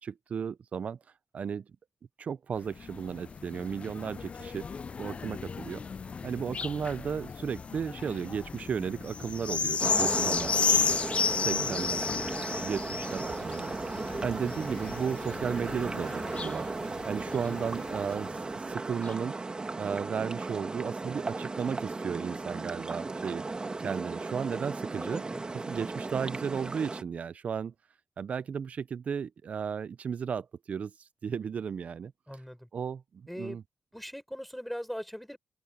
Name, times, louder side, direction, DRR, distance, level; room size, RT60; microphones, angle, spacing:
voice 1, 0.0-1.0 1.3-1.6 2.2-4.7 5.0-5.8 6.2-11.0 11.4-13.7 14.0-16.7 17.1-19.3 19.8-23.4 23.8-25.2 25.7-27.7 28.2-32.1 32.7-33.6, right 7 dB, 65° right, 0.5 m, -34 dB
sound 1, 2.6-18.4 19.0-19.1, left 5 dB, 50° left, 0.3 m, -33 dB
sound 2, 9.8-27.0, right 3 dB, 35° right, 1.7 m, -36 dB
voice 2, 25.0-25.4 32.3-32.7 33.3-33.6 33.9-35.4, equal, ahead, 5.3 m, -40 dB
open air
cardioid pair, 60°, 3 cm